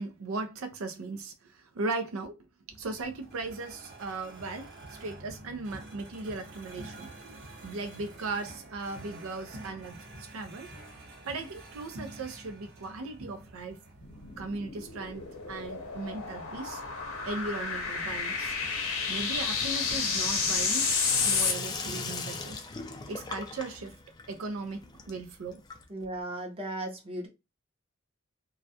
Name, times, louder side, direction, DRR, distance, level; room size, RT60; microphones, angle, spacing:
voice 1, 0.0-2.4 2.7-10.7 11.2-13.8 14.4-16.8 17.2-18.6 19.1-20.9 21.3-22.5 23.1-23.9 24.3-25.6, right 3 dB, 80° right, 0.5 m, -37 dB
sound 1, 2.7-22.5, right 1 dB, 55° right, 1.0 m, -49 dB
sound 2, 14.0-21.5, left 5 dB, 75° left, 0.8 m, -31 dB
Sink (filling or washing), 19.4-26.1, left 4 dB, 20° left, 0.3 m, -40 dB
voice 2, 25.9-27.3, right 1 dB, 25° right, 0.7 m, -36 dB
2.3 x 2.1 x 2.6 m
head